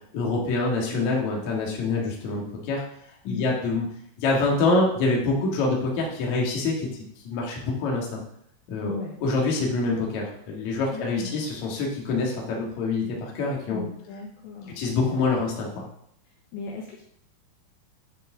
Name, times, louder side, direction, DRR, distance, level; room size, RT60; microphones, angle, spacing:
voice 1, 0.1-2.8 3.2-3.8 4.2-8.2 8.7-8.9 9.2-13.8 14.8-15.9, left 3 dB, 55° left, -2 dB, 2.2 m, -26 dB
voice 2, 8.8-9.1 10.9-11.5 13.7-14.8 16.5-17.0, left 5 dB, 75° left, -2 dB, 2.8 m, -36 dB
10.0 x 5.3 x 3.8 m, 0.71 s
omnidirectional pair, 5.7 m